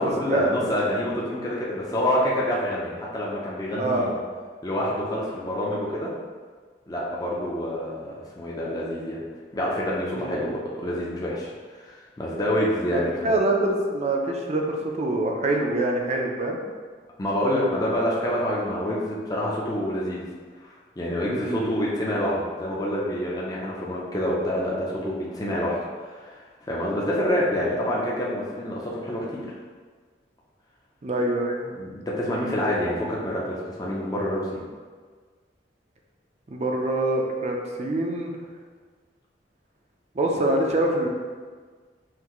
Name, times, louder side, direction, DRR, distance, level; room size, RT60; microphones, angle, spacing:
voice 1, 0.0-4.1 4.6-6.1 6.9-9.2 9.5-13.1 17.2-20.3 20.6-25.8 26.1-26.4 26.7-29.4 31.8-34.6, equal, 20° left, -5 dB, 0.6 m, -27 dB
voice 2, 3.8-4.1 10.1-10.5 12.9-16.6 21.3-21.7 31.0-31.7 36.5-38.3 40.1-41.1, right 2 dB, 35° right, 1 dB, 0.5 m, -25 dB
5.8 x 2.6 x 3.0 m, 1.6 s
head